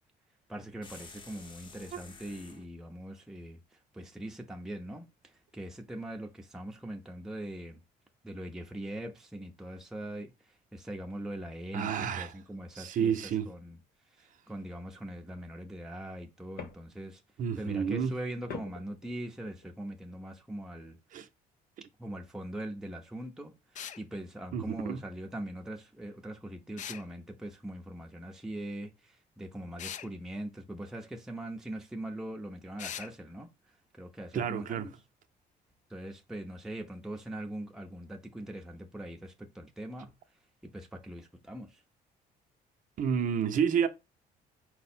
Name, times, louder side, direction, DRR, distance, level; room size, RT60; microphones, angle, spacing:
voice 1, 0.5-7.8 8.2-13.2 13.5-13.8 14.1-17.2 17.6-21.0 22.0-33.5 34.0-34.9 35.9-40.1 40.6-41.8, right 1 dB, 5° right, 0.7 m, -41 dB
sound 1, 0.8-2.7, left 3 dB, 30° left, 0.8 m, -51 dB
voice 2, 11.7-12.3 12.7-13.5 17.4-18.1 21.1-21.3 24.5-25.0 34.3-34.9 43.0-43.9, right 7 dB, 50° right, 0.6 m, -30 dB
sound 2, 15.2-15.3 16.0-17.2 18.5-19.7, left 6 dB, 70° left, 0.9 m, -45 dB
sound 3, 23.8-24.0 26.8-27.1 29.8-30.1 32.8-33.1, left 9 dB, 45° left, 0.4 m, -40 dB
4.6 x 2.1 x 4.3 m
cardioid pair, 110°, 17 cm